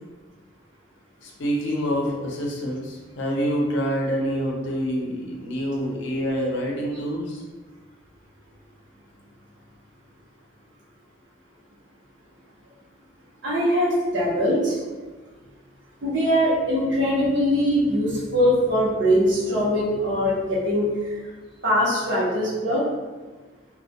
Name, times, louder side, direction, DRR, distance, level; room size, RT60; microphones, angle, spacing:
voice 1, 1.2-7.4, equal, 65° left, -2 dB, 0.5 m, -26 dB
voice 2, 13.4-14.8 16.0-21.2 21.6-22.8, equal, 65° right, -5 dB, 0.7 m, -22 dB
2.2 x 2.1 x 2.7 m, 1.3 s
head